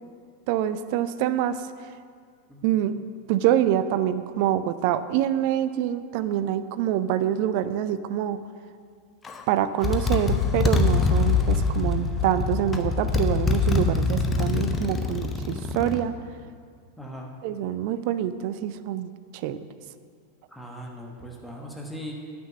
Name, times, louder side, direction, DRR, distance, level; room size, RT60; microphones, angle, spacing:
voice 1, 0.5-1.7 2.6-3.0 3.3-8.4 9.5-16.1 17.4-19.6, right 11 dB, 45° right, 13 dB, 0.4 m, -26 dB
Motorcycle, 9.2-9.4 9.8-16.0, left 4 dB, 20° left, 0.7 m, -24 dB
voice 2, 17.0-17.3 20.5-22.1, equal, ahead, -1 dB, 1.3 m, -39 dB
9.3 x 6.0 x 6.9 m, 2.1 s
figure-of-eight pair, 90°, 0 cm